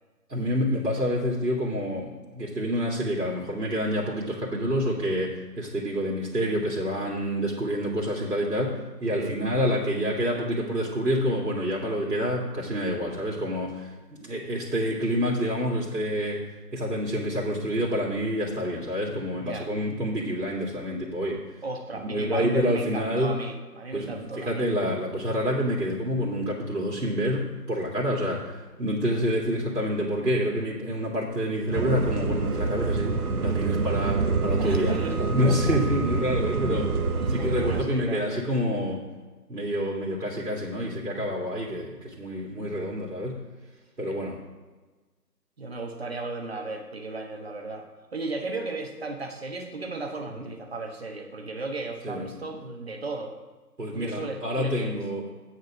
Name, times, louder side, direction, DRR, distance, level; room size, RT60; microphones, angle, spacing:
voice 1, 0.3-16.4 16.7-21.4 21.9-23.4 23.9-34.9 35.3-36.9 37.3-39.0 39.5-43.4 44.0-44.4 50.3-50.4 52.0-52.3 53.8-55.3, equal, 85° right, -3 dB, 2.5 m, -28 dB
voice 2, 19.4-19.7 21.6-24.7 34.6-35.8 37.1-38.5 44.0-44.2 45.6-53.4 53.9-55.0, right 3 dB, 40° right, 3 dB, 1.3 m, -35 dB
sound 1, 31.7-37.8, right 4 dB, 65° right, 1.0 m, -27 dB
8.9 x 7.0 x 6.0 m, 1.3 s
figure-of-eight pair, 160°, 48 cm